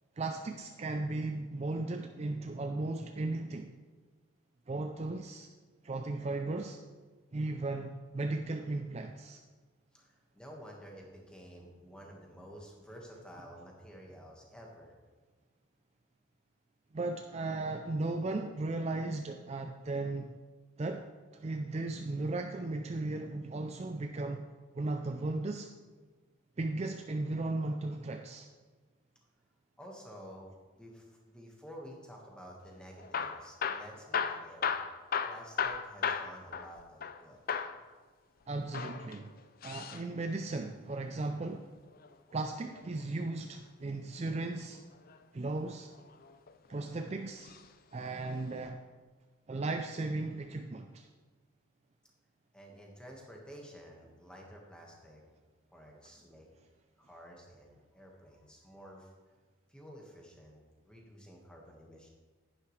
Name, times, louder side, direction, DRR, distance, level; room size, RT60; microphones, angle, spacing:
voice 1, 0.2-3.7 4.7-5.5 5.8-6.8 7.3-9.4 16.9-20.4 20.8-21.1 21.3-24.4 24.7-25.7 26.6-28.5 38.5-39.3 39.6-41.7 42.3-44.8 45.3-45.9 46.7-47.5 47.9-48.8 49.5-51.1, right 2 dB, 30° right, 5 dB, 0.4 m, -36 dB
voice 2, 9.9-14.9 29.8-30.5 30.7-34.7 35.2-37.4 52.5-55.2 55.7-56.5 57.0-59.3 59.7-62.1, equal, 5° left, -1 dB, 1.5 m, -51 dB
Hammer / Drill, 33.0-37.2 37.5-37.8 38.6-40.0 41.8-43.0 44.7-45.2 45.9-46.7 47.4-47.7 48.0-48.1 48.7-48.8, left 6 dB, 40° left, 0.4 m, -36 dB
10.5 x 10.5 x 3.3 m, 1.4 s
head